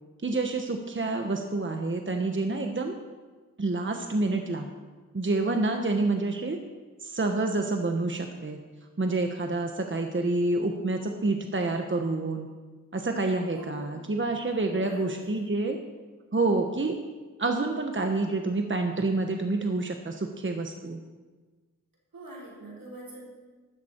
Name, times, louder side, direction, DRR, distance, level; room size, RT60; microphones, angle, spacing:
voice 1, 0.2-2.9 3.6-4.7 5.1-6.6 7.0-8.6 9.0-12.5 12.9-15.8 16.3-17.0 17.4-21.0, right 2 dB, 35° right, 4 dB, 1.1 m, -28 dB
voice 2, 4.1-4.5 13.5-14.0 14.7-15.5 22.1-23.2, right 1 dB, 85° right, -5 dB, 4.8 m, -45 dB
13.0 x 13.0 x 4.5 m, 1.3 s
wide cardioid pair, 60°, 33 cm